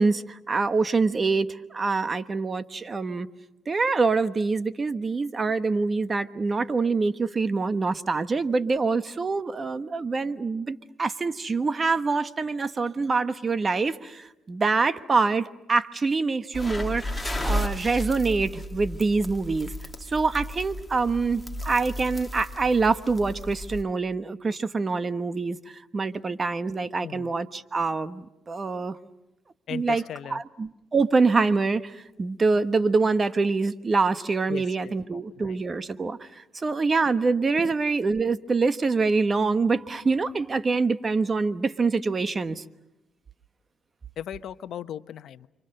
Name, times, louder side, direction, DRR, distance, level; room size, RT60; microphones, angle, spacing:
voice 1, 0.0-3.3 3.7-19.7 20.1-25.6 25.9-29.0 29.7-30.0 30.3-42.6, right 4 dB, 35° right, 1.2 m, -25 dB
sound 1, 16.5-23.8, left 1 dB, 10° left, 2.1 m, -34 dB
voice 2, 27.0-27.3 29.7-30.4 34.5-35.6 37.6-37.7 44.2-45.5, left 10 dB, 70° left, 0.9 m, -38 dB
29.5 x 25.0 x 6.7 m
cardioid pair, 90°, 0 cm